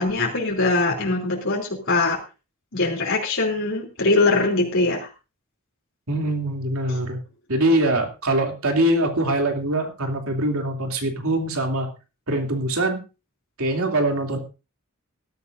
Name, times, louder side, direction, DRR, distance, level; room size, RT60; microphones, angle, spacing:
voice 1, 0.0-2.2 2.7-5.1 6.9-7.0, left 3 dB, 65° left, -2 dB, 3.2 m, -22 dB
voice 2, 6.1-7.2 7.5-11.9 12.3-13.0 13.6-14.4, right 1 dB, 80° right, 3 dB, 2.9 m, -23 dB
19.5 x 12.5 x 2.6 m, 0.31 s
head